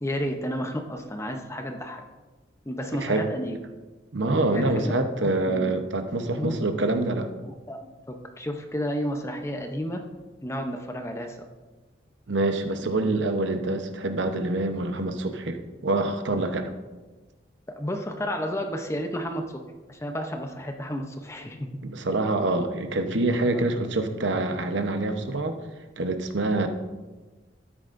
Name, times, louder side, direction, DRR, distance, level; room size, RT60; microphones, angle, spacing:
voice 1, 0.0-2.0 2.7-3.5 4.5-4.8 5.4-5.7 6.4-6.5 7.5-10.0 10.4-11.4 17.8-19.6 19.9-21.8 23.4-23.6, equal, 15° left, 4 dB, 0.7 m, -32 dB
voice 2, 2.9-3.3 4.1-7.3 12.3-16.7 21.8-25.6 26.0-26.7, right 2 dB, 80° right, 7 dB, 0.9 m, -26 dB
12.5 x 9.9 x 2.6 m, 1.2 s
head